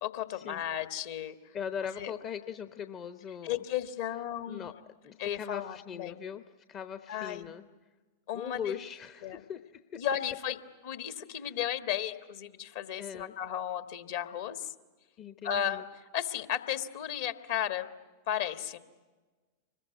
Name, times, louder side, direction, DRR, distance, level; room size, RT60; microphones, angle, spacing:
voice 1, 0.0-1.4 1.9-2.1 3.4-4.7 5.2-6.2 7.1-7.5 8.3-8.7 9.2-9.4 10.0-10.6 10.8-14.7 15.4-17.9 18.3-18.8, left 10 dB, 55° left, 9 dB, 1.4 m, -34 dB
voice 2, 1.5-3.6 4.5-4.7 5.0-6.4 6.7-7.6 8.3-10.0 11.3-11.5 13.0-13.3 15.2-15.9, left 8 dB, 30° left, 10 dB, 0.8 m, -40 dB
25.5 x 21.5 x 9.3 m, 1.3 s
figure-of-eight pair, 90°, 0 cm